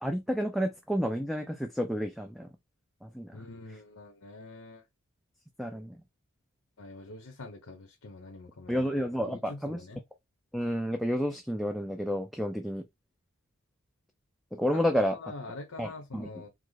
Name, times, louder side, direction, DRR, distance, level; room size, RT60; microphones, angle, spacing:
voice 1, 0.0-2.5 3.0-3.3 5.6-6.0 8.7-9.8 10.5-12.8 14.6-15.2 15.8-16.3, equal, ahead, 0.3 m, -30 dB
voice 2, 3.3-4.8 6.8-8.9 9.2-10.0 14.7-16.5, left 3 dB, 90° left, 0.9 m, -45 dB
4.8 x 2.1 x 4.0 m
head